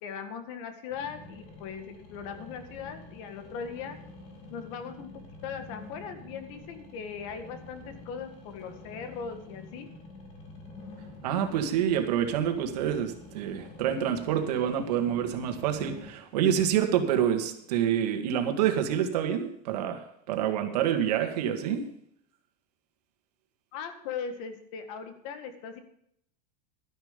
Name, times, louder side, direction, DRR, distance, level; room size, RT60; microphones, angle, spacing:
voice 1, 0.0-4.0 4.5-5.1 5.4-9.9 23.7-25.8, left 6 dB, 50° left, 8 dB, 1.8 m, -39 dB
sound 1, 0.9-16.1, left 2 dB, 30° left, 2.6 m, -47 dB
voice 2, 11.2-21.9, right 9 dB, 80° right, 6 dB, 2.0 m, -27 dB
12.5 x 10.5 x 5.2 m, 0.71 s
supercardioid pair, 175°, 20 cm